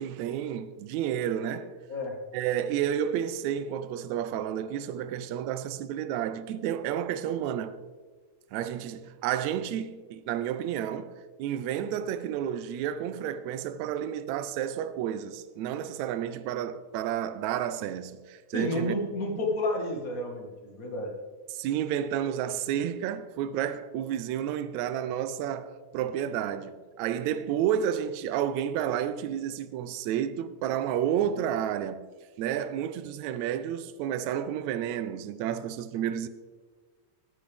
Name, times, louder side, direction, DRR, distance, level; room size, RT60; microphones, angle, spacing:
voice 1, 0.0-1.7 2.3-7.8 8.5-19.0 21.5-32.0 32.4-36.3, right 10 dB, 75° right, 1.8 m, -31 dB
voice 2, 18.5-21.1, left 1 dB, 35° left, 1.5 m, -31 dB
13.5 x 10.5 x 3.5 m
omnidirectional pair, 3.5 m